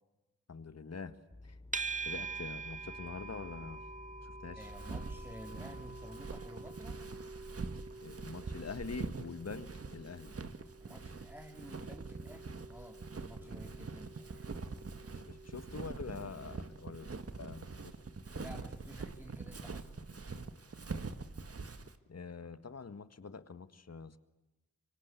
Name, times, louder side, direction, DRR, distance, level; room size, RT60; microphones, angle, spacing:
voice 1, 0.5-1.6 2.0-3.8 4.2-4.7 8.0-10.3 13.4-13.6 15.1-17.1 17.4-18.0 22.1-24.2, left 5 dB, 55° left, 12 dB, 1.8 m, -45 dB
sound 1, 1.3-6.2, left 2 dB, 20° left, 4.5 m, -53 dB
sound 2, 1.7-18.9, right 4 dB, 25° right, 1.5 m, -47 dB
voice 2, 4.5-7.0 10.8-14.5 18.4-19.9, equal, 5° right, 3 dB, 3.6 m, -52 dB
Walk footsteps, 4.6-21.9, right 4 dB, 50° right, 1.7 m, -44 dB
25.5 x 24.5 x 8.4 m, 1.0 s
cardioid pair, 55°, 30 cm